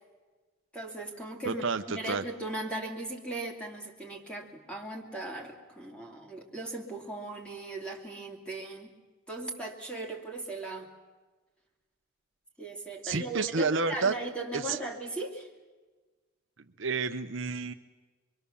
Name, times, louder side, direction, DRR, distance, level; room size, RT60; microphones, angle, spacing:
voice 1, 0.7-8.9 9.3-10.9 12.6-15.5, right 2 dB, 5° left, 1 dB, 2.6 m, -38 dB
voice 2, 1.5-2.2 13.0-14.1 14.5-14.8 16.8-17.7, right 4 dB, 55° right, 7 dB, 0.8 m, -30 dB
25.5 x 23.5 x 7.0 m, 1.3 s
head